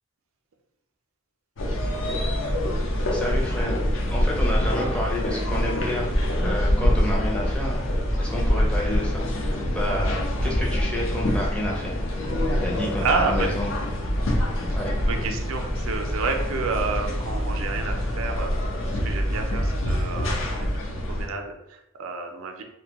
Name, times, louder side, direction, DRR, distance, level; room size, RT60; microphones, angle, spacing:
sound 1, 1.6-21.3, equal, 65° left, 0.5 m, -25 dB
voice 1, 3.1-3.8 4.1-6.1 6.4-7.8 8.2-12.0 12.6-13.7 14.7-15.0, left 1 dB, 5° left, -4 dB, 0.5 m, -30 dB
voice 2, 13.0-13.5 15.1-20.7 21.1-22.6, right 4 dB, 80° right, 4 dB, 0.4 m, -30 dB
2.5 x 2.2 x 2.8 m, 0.84 s
head